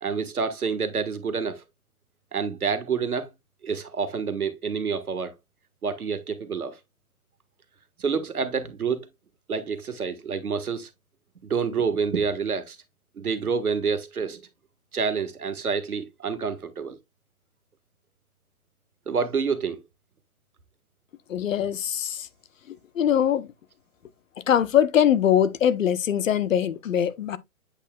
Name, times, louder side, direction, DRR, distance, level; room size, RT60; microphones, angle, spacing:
voice 1, 0.0-1.6 2.3-3.3 3.6-5.3 5.8-6.8 8.0-9.1 9.5-10.9 11.5-12.8 13.2-14.4 14.9-17.0 19.1-19.8, right 5 dB, 85° right, 1.5 m, -28 dB
voice 2, 21.3-22.3 22.7-23.5 24.5-27.4, left 9 dB, 65° left, 0.8 m, -22 dB
8.2 x 5.8 x 2.2 m
hypercardioid pair, 135°, 43 cm